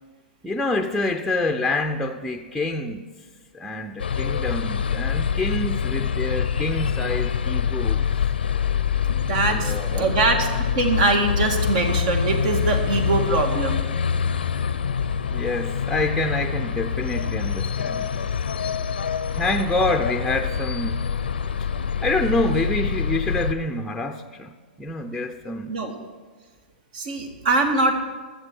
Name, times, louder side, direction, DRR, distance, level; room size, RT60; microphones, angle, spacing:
voice 1, 0.4-3.1 3.5-8.1 9.4-10.1 15.3-18.3 19.3-21.0 22.0-24.5 24.8-25.8, left 2 dB, ahead, 4 dB, 0.7 m, -27 dB
sound 1, 4.0-23.5, left 7 dB, 80° left, 0.7 m, -25 dB
voice 2, 9.3-10.5 10.8-13.8 25.7-25.9 26.9-27.9, right 3 dB, 55° right, 4 dB, 1.9 m, -22 dB
21.0 x 7.5 x 4.6 m, 1.4 s
hypercardioid pair, 110°, 5 cm